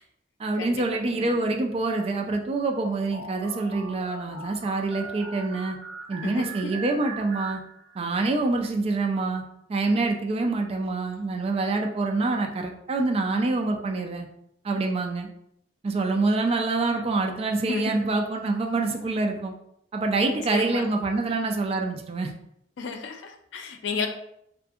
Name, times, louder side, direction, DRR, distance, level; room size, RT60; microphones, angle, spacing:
voice 1, 0.4-5.8 6.1-7.6 8.0-9.4 9.7-14.3 14.6-15.3 15.8-19.5 19.9-22.3, right 3 dB, 35° right, 3 dB, 0.3 m, -26 dB
sound 1, 3.1-8.2, right 3 dB, 75° right, 0.6 m, -40 dB
voice 2, 6.2-6.8 17.7-18.0 20.2-20.9 22.8-24.1, left 4 dB, 75° left, 5 dB, 0.4 m, -32 dB
2.6 x 2.4 x 2.3 m, 0.75 s
head